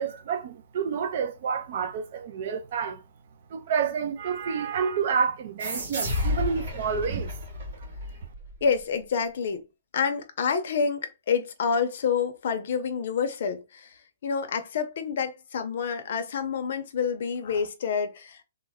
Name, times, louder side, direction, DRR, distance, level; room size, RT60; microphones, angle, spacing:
voice 1, 0.0-3.0 3.5-7.3, right 6 dB, 40° right, 0.4 m, -29 dB
sound 1, 5.6-8.8, left 2 dB, 60° right, 1.6 m, -31 dB
voice 2, 8.6-9.6 9.9-13.9 14.2-18.4, left 6 dB, 50° left, 0.6 m, -28 dB
3.1 x 2.1 x 3.4 m
hypercardioid pair, 175°, 0 cm